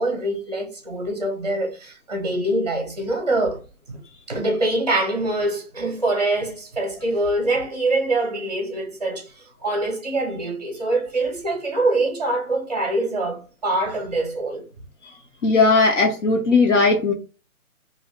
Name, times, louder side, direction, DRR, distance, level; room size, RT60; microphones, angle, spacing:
voice 1, 0.0-3.6 3.9-4.0 4.3-9.3 9.6-14.6, right 2 dB, 30° right, 0.7 m, -24 dB
voice 2, 15.4-17.1, left 3 dB, 55° left, 0.7 m, -17 dB
2.6 x 2.3 x 3.0 m
hypercardioid pair, 170°, 44 cm